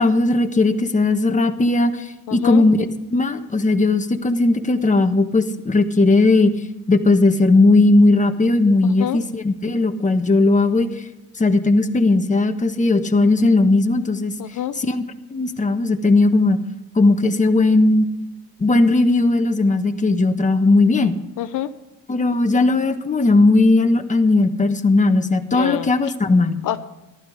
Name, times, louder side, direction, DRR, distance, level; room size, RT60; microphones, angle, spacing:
voice 1, 0.0-2.8 3.1-6.5 6.9-10.9 11.4-14.3 14.8-15.0 15.3-16.6 16.9-18.1 18.6-21.2 22.1-26.6, left 2 dB, 20° left, 5 dB, 1.4 m, -17 dB
voice 2, 2.3-2.6 8.8-9.2 14.4-14.8 21.4-21.7 25.5-26.1 26.6-26.8, left 12 dB, 70° left, 10 dB, 0.8 m, -27 dB
14.5 x 12.0 x 5.1 m, 0.99 s
cardioid pair, 95°, 33 cm